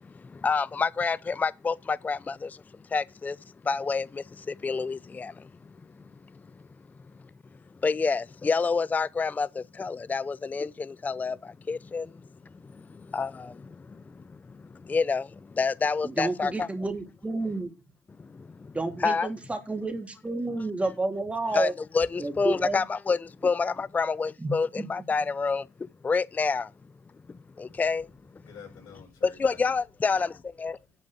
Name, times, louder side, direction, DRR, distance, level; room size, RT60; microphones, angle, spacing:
voice 1, 0.3-2.6 2.9-3.4 3.6-5.5 7.8-12.1 12.9-14.0 14.8-16.7 18.3-18.5 19.0-19.3 21.5-23.2 23.4-25.7 26.0-26.7 27.6-28.1 29.4-30.8, left 4 dB, 20° left, 0.4 m, -28 dB
voice 2, 16.0-17.7 18.7-21.7 22.2-22.8 24.4-24.9, right 2 dB, 15° right, 3.0 m, -30 dB
voice 3, 27.7-29.7 30.7-30.9, left 6 dB, 60° left, 6.5 m, -50 dB
11.0 x 5.2 x 6.1 m
hypercardioid pair, 65°, 8 cm